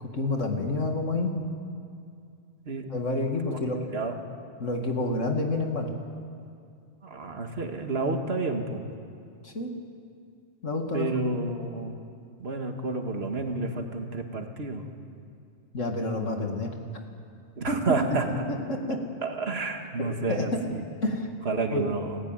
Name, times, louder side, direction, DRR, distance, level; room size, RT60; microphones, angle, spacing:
voice 1, 0.1-1.3 2.9-3.8 4.6-5.9 9.4-9.7 10.6-11.1 15.7-16.7 17.7-17.8 18.7-19.0 20.3-20.6 21.0-21.3 21.7-21.9, left 2 dB, 65° left, 3 dB, 2.6 m, -28 dB
voice 2, 3.8-4.2 7.0-8.8 10.9-12.0 12.4-14.8 17.6-18.5 19.2-20.8 21.5-22.2, right 3 dB, 50° right, 4 dB, 2.1 m, -30 dB
30.0 x 15.0 x 9.1 m, 2.4 s
omnidirectional pair, 1.4 m